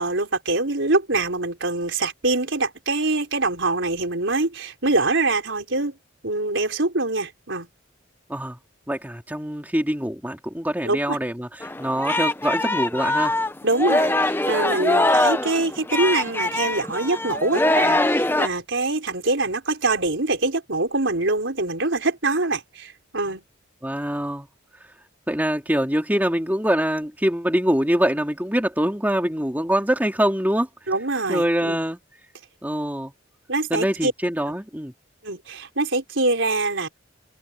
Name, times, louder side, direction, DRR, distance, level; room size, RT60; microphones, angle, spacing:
voice 1, 0.0-5.9 6.2-7.7 10.8-11.2 13.6-23.4 30.9-31.8 33.5-34.1 35.2-37.0, right 2 dB, 70° right, 4.2 m, -24 dB
voice 2, 8.9-13.3 23.3-23.4 23.8-24.5 25.3-30.7 31.3-32.0 32.6-33.1 33.7-34.9, equal, 10° right, 2.9 m, -24 dB
Singing, 11.6-18.5, left 2 dB, 10° left, 0.7 m, -22 dB
head